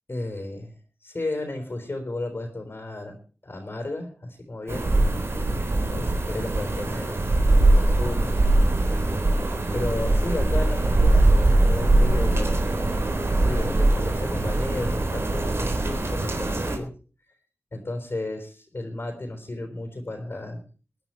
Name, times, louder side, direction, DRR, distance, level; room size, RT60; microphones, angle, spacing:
voice 1, 0.1-0.7 1.0-3.2 3.4-5.0 5.9-7.3 7.6-8.4 9.7-12.7 13.4-16.9 17.7-20.6, left 2 dB, 50° left, 4 dB, 4.0 m, -33 dB
sound 1, 4.7-16.8, right 2 dB, 60° right, 3.6 m, -22 dB
21.5 x 10.0 x 4.5 m, 0.38 s
wide cardioid pair, 65°, 5 cm